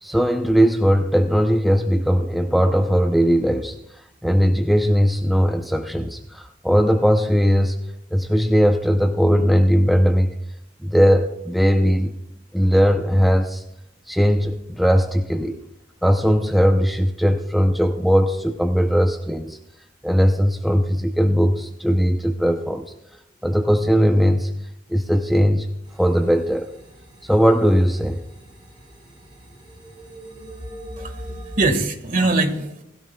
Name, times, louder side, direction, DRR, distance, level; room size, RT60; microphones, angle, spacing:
voice 1, 0.0-7.8 8.1-10.3 10.8-12.1 12.5-13.6 14.1-15.6 16.0-19.6 20.0-22.9 23.4-24.5 24.9-25.7 25.9-26.7 27.2-28.2, equal, ahead, 3 dB, 0.6 m, -19 dB
sound 1, 25.8-31.7, equal, 25° right, 5.0 m, -41 dB
voice 2, 31.0-32.8, right 2 dB, 45° right, 6 dB, 1.7 m, -22 dB
20.0 x 16.0 x 2.3 m, 0.82 s
head